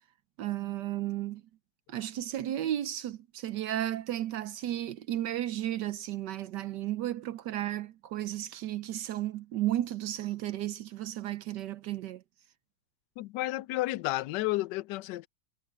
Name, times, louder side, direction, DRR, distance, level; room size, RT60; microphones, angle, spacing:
voice 1, 0.4-1.4 1.9-12.2, right 13 dB, 70° right, 1.1 m, -34 dB
voice 2, 13.2-15.3, left 18 dB, 80° left, 0.9 m, -31 dB
omnidirectional pair, 2.3 m